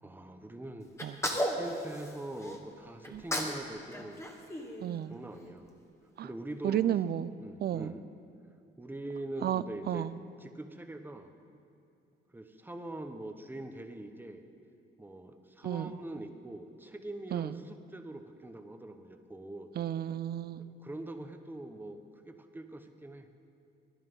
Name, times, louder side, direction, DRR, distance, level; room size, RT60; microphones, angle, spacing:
voice 1, 0.0-0.9 1.3-4.2 5.1-5.7 6.2-6.8 7.4-8.0 8.8-10.1 10.4-11.3 12.3-14.4 15.0-19.7 20.6-23.3, right 1 dB, 10° right, 7 dB, 0.9 m, -43 dB
Sneeze, 1.0-2.6 3.0-3.6 3.9-5.4, equal, 15° left, 1.4 m, -35 dB
voice 2, 4.8-5.1 6.2-6.3 6.6-7.3 7.6-7.9 9.4-10.1 15.6-15.9 17.3-17.5 19.8-20.7, right 10 dB, 55° right, 16 dB, 0.4 m, -32 dB
11.0 x 10.5 x 5.5 m, 2.6 s
cardioid pair, 90°, 20 cm